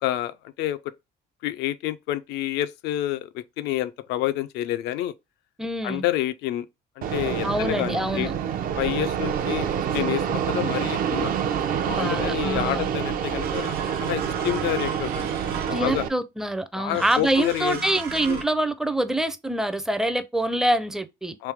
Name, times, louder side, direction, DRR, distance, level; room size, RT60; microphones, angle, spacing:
voice 1, 0.0-0.9 1.4-5.1 5.8-6.7 7.0-8.3 8.8-9.7 9.9-11.3 11.9-15.4 15.7-16.1 16.8-17.8 18.3-18.4 21.4-21.5, left 13 dB, 85° left, 0.5 m, -28 dB
voice 2, 5.6-6.0 7.4-8.3 11.8-12.9 15.7-21.4, right 1 dB, 5° right, 0.4 m, -25 dB
Fixed-wing aircraft airplane, 7.0-16.1, right 8 dB, 60° right, 0.6 m, -27 dB
sound 1, 13.4-16.1 16.9-18.4, right 6 dB, 90° right, 1.0 m, -35 dB
3.3 x 3.1 x 3.4 m
cardioid pair, 110°, 17 cm